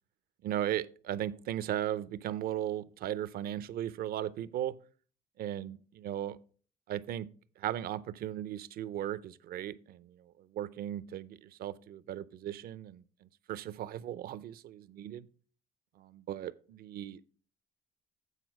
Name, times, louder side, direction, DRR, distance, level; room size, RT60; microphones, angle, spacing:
voice 1, 0.4-4.7 5.4-6.4 6.9-7.3 7.6-10.1 10.5-13.0 13.5-15.3 16.0-17.2, right 12 dB, 65° right, 0.5 m, -37 dB
8.3 x 4.3 x 5.8 m
cardioid pair, 110°, 17 cm